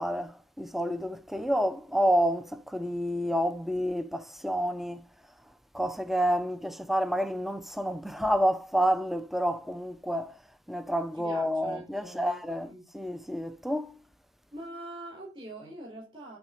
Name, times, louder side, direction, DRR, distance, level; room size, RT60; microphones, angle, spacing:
voice 1, 0.0-5.0 5.7-10.4 10.7-13.9, equal, ahead, 0.4 m, -29 dB
voice 2, 11.1-12.8 14.5-16.4, right 1 dB, 25° right, 4.2 m, -44 dB
9.3 x 4.1 x 5.2 m
head